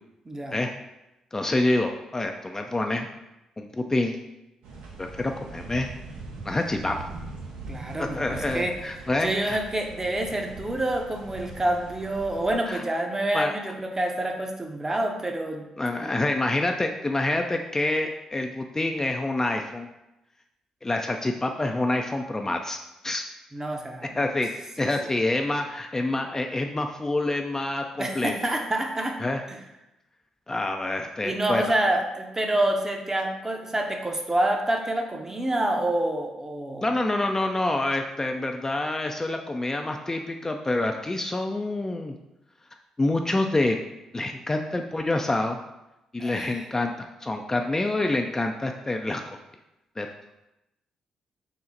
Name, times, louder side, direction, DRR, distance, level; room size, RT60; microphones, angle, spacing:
voice 1, 0.3-0.6 7.7-8.7 9.2-15.6 16.0-16.1 23.5-24.2 24.8-25.1 28.0-29.2 29.5-29.6 31.2-36.9 46.2-46.7, right 1 dB, 20° right, 2 dB, 0.7 m, -27 dB
voice 2, 1.3-3.1 3.6-4.2 5.0-5.9 6.5-7.1 8.0-9.6 12.7-12.8 13.3-13.5 15.8-19.9 20.8-22.8 23.0-23.2 24.2-28.3 29.2-29.4 30.5-31.7 36.8-42.1 43.0-43.8 44.1-45.6 46.1-49.4 50.0-50.1, left 2 dB, 20° left, 4 dB, 0.3 m, -27 dB
sound 1, 4.6-12.5, right 3 dB, 75° right, 0.6 m, -41 dB
3.8 x 2.1 x 4.1 m, 0.94 s
hypercardioid pair, 45°, 2 cm